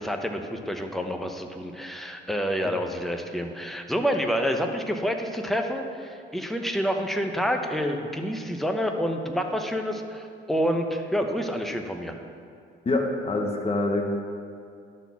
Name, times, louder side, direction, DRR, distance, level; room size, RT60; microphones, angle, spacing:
voice 1, 0.0-12.1, equal, ahead, 4 dB, 0.9 m, -28 dB
voice 2, 12.8-14.2, left 2 dB, 30° left, 1 dB, 1.2 m, -25 dB
11.0 x 4.3 x 7.1 m, 2.3 s
cardioid pair, 90°, 20 cm